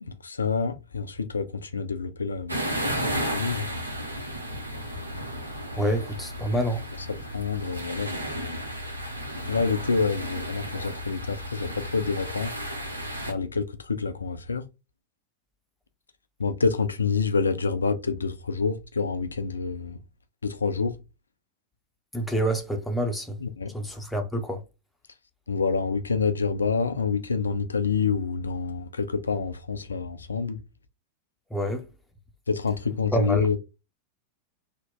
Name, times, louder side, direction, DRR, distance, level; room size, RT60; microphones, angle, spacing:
voice 1, 0.0-3.7 7.3-8.7 9.5-12.6 13.2-14.7 16.4-20.0 20.4-21.0 23.4-23.7 25.5-30.6 32.5-33.6, left 5 dB, 75° left, 0.4 m, -27 dB
sound 1, 2.5-13.3, equal, 85° right, 0.6 m, -33 dB
voice 2, 5.7-6.8 22.1-23.4 23.7-24.6 31.5-31.9 33.1-33.5, right 1 dB, 5° left, 0.7 m, -27 dB
3.0 x 2.1 x 3.4 m
figure-of-eight pair, 90°, 0 cm